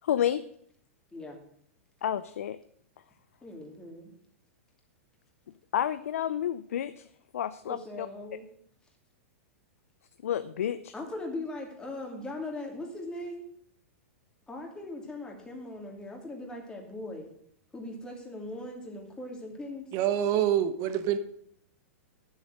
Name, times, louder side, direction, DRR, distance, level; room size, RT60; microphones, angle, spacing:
voice 1, 0.0-0.4 2.0-2.6 5.7-7.1 7.3-8.1 10.2-10.9, left 10 dB, 80° left, 13 dB, 0.5 m, -30 dB
voice 2, 3.4-4.1 7.7-8.5 10.9-13.4 14.5-17.3 17.7-19.9, left 2 dB, 10° left, 0 dB, 2.8 m, -39 dB
voice 3, 19.9-21.2, right 10 dB, 45° right, 10 dB, 1.2 m, -26 dB
10.5 x 7.2 x 6.6 m, 0.66 s
hypercardioid pair, 125°, 8 cm